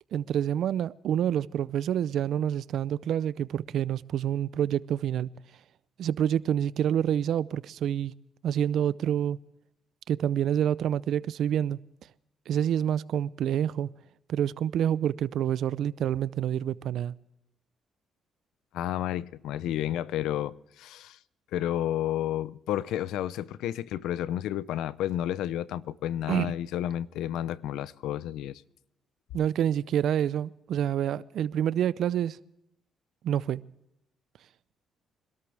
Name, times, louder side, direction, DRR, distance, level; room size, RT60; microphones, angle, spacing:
voice 1, 0.1-5.3 6.0-8.1 8.4-9.4 10.1-11.8 12.5-13.9 14.3-17.1 26.3-26.5 29.3-32.4 33.2-33.7, right 10 dB, 70° right, 0.5 m, -27 dB
voice 2, 18.7-21.2 21.5-28.6, left 12 dB, 90° left, 0.5 m, -31 dB
24.5 x 13.0 x 3.4 m
cardioid pair, 90°, 0 cm